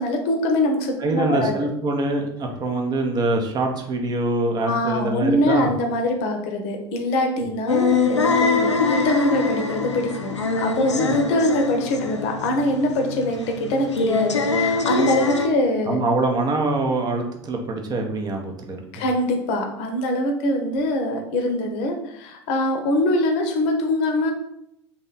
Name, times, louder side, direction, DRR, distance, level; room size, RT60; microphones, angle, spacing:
voice 1, 0.0-1.5 4.6-16.0 18.9-24.3, left 1 dB, 45° left, 3 dB, 0.7 m, -23 dB
voice 2, 1.0-5.7 10.9-11.2 15.9-19.0, right 2 dB, 30° right, 2 dB, 0.7 m, -24 dB
sound 1, 7.7-15.5, left 4 dB, 80° left, 0.4 m, -23 dB
3.1 x 2.9 x 4.0 m, 0.78 s
figure-of-eight pair, 75°, 15 cm